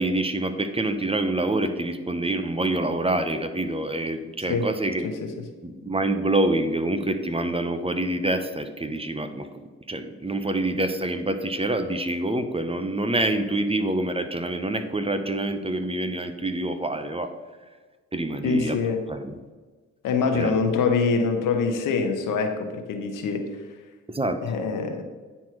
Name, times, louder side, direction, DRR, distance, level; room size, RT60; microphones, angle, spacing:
voice 1, 0.0-5.1 5.6-9.5 9.9-17.3 18.1-18.8 19.1-19.4 20.3-20.5 24.1-24.4, right 2 dB, 20° right, 9 dB, 0.8 m, -26 dB
voice 2, 18.4-19.0 20.0-23.5 24.4-25.0, left 4 dB, 80° left, 5 dB, 1.1 m, -24 dB
9.2 x 4.3 x 4.6 m, 1.4 s
supercardioid pair, 60°, 32 cm